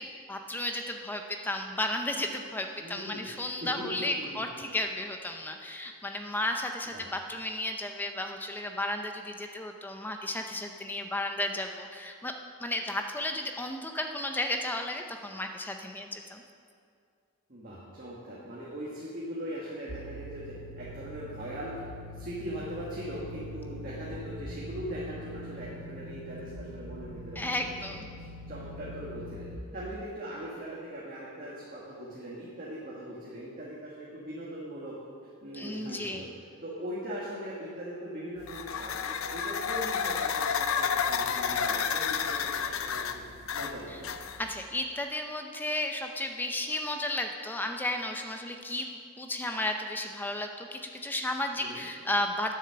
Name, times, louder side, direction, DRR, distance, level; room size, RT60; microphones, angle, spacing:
voice 1, 0.0-12.3 12.6-16.4 27.4-28.1 35.5-36.3 43.9-44.0 44.4-52.5, left 1 dB, 10° left, 4 dB, 0.6 m, -33 dB
voice 2, 2.8-3.3 3.6-4.4 6.8-7.1 17.5-21.8 22.1-27.5 27.9-35.0 35.4-36.3 36.6-43.2 43.5-44.1 51.6-51.9, equal, 40° right, -6 dB, 1.7 m, -40 dB
sound 1, 19.9-29.6, equal, 80° right, 0.8 m, -43 dB
sound 2, 38.4-44.6, left 7 dB, 65° left, 0.5 m, -31 dB
10.0 x 7.4 x 6.8 m, 2.3 s
head